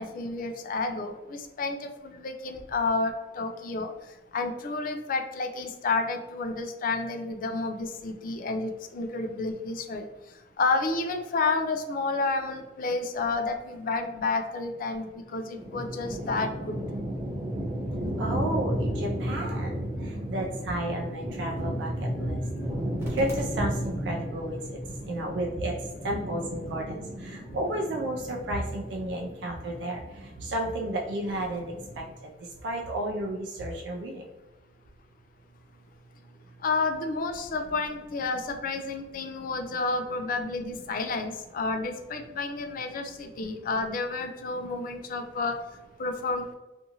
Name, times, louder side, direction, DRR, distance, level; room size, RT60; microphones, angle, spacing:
voice 1, 0.0-3.9 4.3-10.1 10.6-16.8 36.6-45.6 46.0-46.6, left 3 dB, 50° left, 6 dB, 0.4 m, -30 dB
sound 1, 15.5-32.1, equal, 15° right, 0.9 m, -34 dB
voice 2, 18.2-22.4 23.1-24.8 25.1-25.7 26.0-32.3 32.6-34.3, right 1 dB, 75° right, 0 dB, 0.4 m, -32 dB
2.6 x 2.4 x 2.8 m, 1.1 s
head